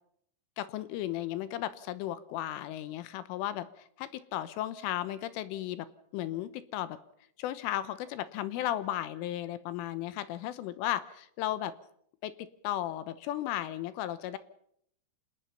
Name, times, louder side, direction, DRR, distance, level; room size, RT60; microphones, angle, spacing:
voice 1, 0.6-5.9 6.1-7.0 7.4-11.7 12.2-14.4, left 13 dB, 80° left, 13 dB, 3.4 m, -35 dB
27.5 x 18.5 x 5.7 m, 0.69 s
omnidirectional pair, 5.9 m